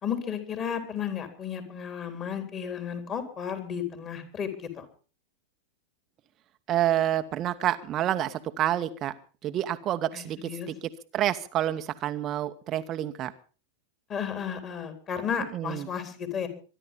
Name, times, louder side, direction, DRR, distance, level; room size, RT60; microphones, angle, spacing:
voice 1, 0.0-4.5 4.8-4.9 10.1-10.7 14.1-16.5, left 7 dB, 30° left, 8 dB, 3.7 m, -33 dB
voice 2, 6.7-9.1 9.4-10.7 11.1-13.3 15.5-15.9, right 12 dB, 30° right, 9 dB, 0.9 m, -28 dB
24.0 x 11.0 x 5.3 m, 0.38 s
figure-of-eight pair, 90°, 0 cm